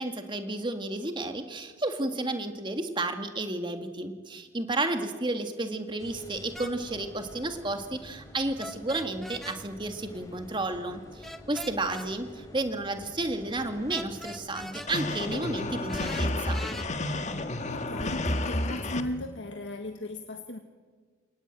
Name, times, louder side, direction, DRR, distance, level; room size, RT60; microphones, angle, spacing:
voice 1, 0.0-16.6, right 2 dB, 25° right, 7 dB, 1.9 m, -32 dB
sound 1, 6.0-15.7, left 1 dB, 20° left, 4.1 m, -49 dB
sound 2, 6.5-6.7 8.6-9.6 11.2-12.1 13.9-14.9 15.9-16.9, equal, ahead, 1.1 m, -41 dB
sound 3, 14.9-19.0, left 2 dB, 40° left, 1.7 m, -31 dB
voice 2, 17.4-20.6, left 1 dB, 70° left, 5 dB, 1.7 m, -37 dB
28.5 x 19.0 x 9.1 m, 1.6 s
head